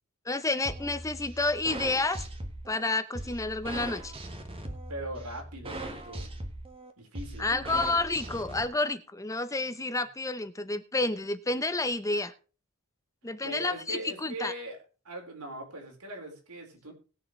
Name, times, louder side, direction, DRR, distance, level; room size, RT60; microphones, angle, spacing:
voice 1, 0.3-2.2 2.7-4.1 7.4-12.3 13.2-14.5, left 2 dB, 15° left, 11 dB, 0.7 m, -30 dB
sound 1, 0.7-8.6, right 1 dB, 25° right, 1.7 m, -40 dB
voice 2, 4.9-6.3 7.0-7.8 13.4-14.8 15.0-16.9, right 1 dB, 90° right, 2 dB, 4.3 m, -40 dB
19.5 x 7.5 x 3.2 m, 0.35 s
head